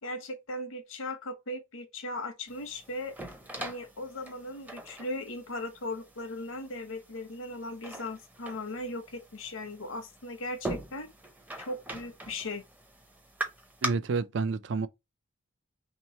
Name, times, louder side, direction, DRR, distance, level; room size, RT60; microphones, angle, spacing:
voice 1, 0.0-3.1 3.6-11.1 11.6-12.6, left 1 dB, 85° left, 1.0 m, -38 dB
sound 1, 2.5-13.9, right 2 dB, 10° right, 0.5 m, -42 dB
voice 2, 13.8-14.9, right 4 dB, 60° right, 0.4 m, -29 dB
3.1 x 3.0 x 4.2 m
head